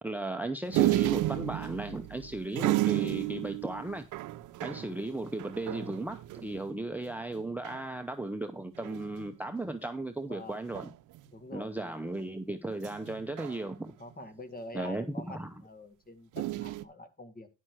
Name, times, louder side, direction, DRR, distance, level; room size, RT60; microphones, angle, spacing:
voice 1, 0.0-4.1 4.6-10.9 11.5-13.9 14.7-15.5, right 2 dB, 5° right, 0.7 m, -36 dB
sound 1, 0.7-6.7 7.1-7.2 7.4-7.9 8.8-9.3 10.7-11.2 12.8-14.1 16.4-16.8, right 17 dB, 80° right, 0.6 m, -32 dB
voice 2, 10.3-10.6 11.3-12.0 14.0-17.5, left 2 dB, 30° left, 1.8 m, -46 dB
10.0 x 6.1 x 4.6 m
cardioid pair, 90°, 30 cm